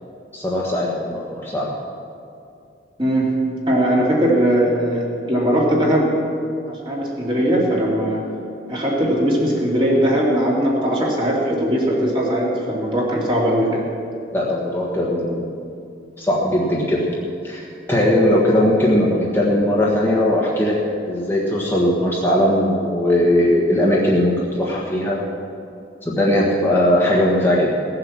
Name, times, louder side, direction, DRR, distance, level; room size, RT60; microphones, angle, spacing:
voice 1, 0.3-1.7 14.3-15.5 16.2-17.0 17.4-20.8 21.1-25.2 26.0-27.9, left 1 dB, 10° left, -5 dB, 1.4 m, -19 dB
voice 2, 3.0-3.3 3.7-5.0 5.3-6.1 6.7-8.2 8.7-13.8, equal, 25° right, -4 dB, 2.8 m, -19 dB
17.0 x 7.7 x 7.3 m, 2.5 s
head